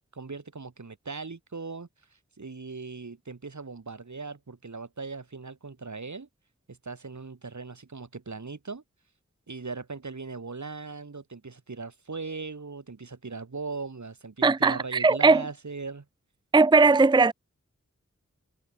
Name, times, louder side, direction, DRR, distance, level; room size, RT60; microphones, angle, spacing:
voice 1, 0.1-1.9 2.4-6.3 6.7-8.8 9.5-16.1, right 4 dB, 70° right, 2.6 m, -39 dB
voice 2, 14.4-15.4 16.5-17.3, right 3 dB, 15° right, 0.5 m, -19 dB
wide cardioid pair, 50°, 30 cm